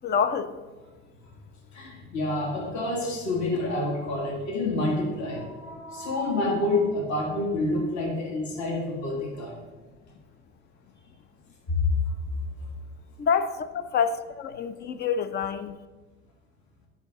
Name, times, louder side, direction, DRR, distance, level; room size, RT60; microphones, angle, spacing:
voice 1, 0.0-0.5 13.2-15.8, left 6 dB, 30° left, 0.4 m, -27 dB
voice 2, 1.7-9.6 11.7-11.8, left 2 dB, 50° left, 1.8 m, -28 dB
9.9 x 4.2 x 3.5 m
hypercardioid pair, 80°, 38 cm